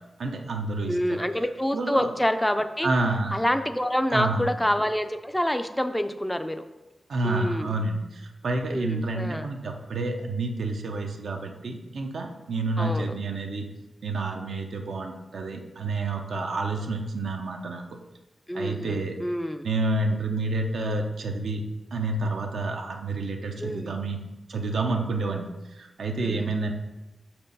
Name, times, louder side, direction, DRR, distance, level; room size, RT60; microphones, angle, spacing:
voice 1, 0.2-1.2 1.7-2.1 2.8-3.4 4.1-4.6 7.1-13.7 14.0-17.8 18.5-19.2 19.6-21.6 21.9-24.2 24.5-26.7, right 2 dB, 80° right, 3 dB, 0.7 m, -29 dB
voice 2, 0.8-2.9 3.3-6.6 7.2-7.7 8.7-9.5 12.8-13.1 18.5-19.7 23.6-24.0 26.2-26.5, equal, 5° left, 9 dB, 0.4 m, -27 dB
6.5 x 4.5 x 5.3 m, 1.0 s
wide cardioid pair, 155°, 0 cm